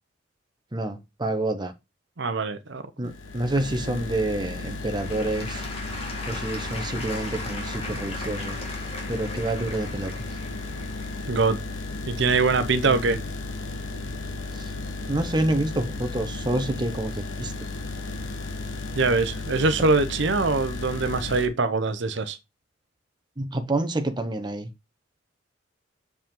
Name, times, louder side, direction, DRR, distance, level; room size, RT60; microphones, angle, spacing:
voice 1, 0.7-1.7 3.0-5.6 6.3-8.6 9.1-10.1 12.8-13.2 15.1-17.5 23.4-24.7, right 1 dB, 25° right, 1.0 m, -28 dB
voice 2, 2.2-3.1 11.3-11.6 12.1-13.2 18.9-22.4, right 3 dB, 65° right, 0.8 m, -23 dB
sound 1, 3.0-21.5, left 2 dB, 70° left, 1.2 m, -34 dB
Applause / Crowd, 4.4-13.2 13.9-14.0, left 2 dB, 30° left, 2.2 m, -39 dB
6.9 x 5.2 x 3.7 m
head